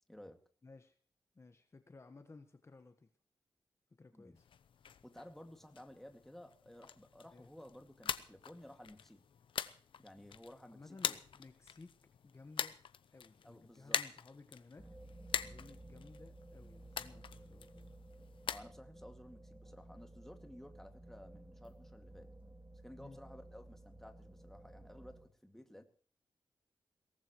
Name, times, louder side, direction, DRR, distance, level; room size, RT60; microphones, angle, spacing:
voice 1, 0.1-0.4 4.1-4.4 5.0-9.2 10.0-11.2 13.4-14.0 17.1-17.3 18.5-22.3 22.8-25.8, left 1 dB, 5° left, 5 dB, 2.3 m, -55 dB
voice 2, 0.6-1.0 1.3-3.1 3.9-4.5 7.3-7.5 10.7-11.9 12.2-12.7 13.1-14.9 15.3-18.0 23.0-23.2, left 3 dB, 35° left, 7 dB, 1.4 m, -57 dB
sound 1, 4.4-18.6, left 8 dB, 85° left, 0.8 m, -44 dB
sound 2, 14.8-25.3, right 1 dB, 15° right, 2.4 m, -55 dB
22.5 x 18.0 x 3.2 m, 0.44 s
wide cardioid pair, 105°, 9 cm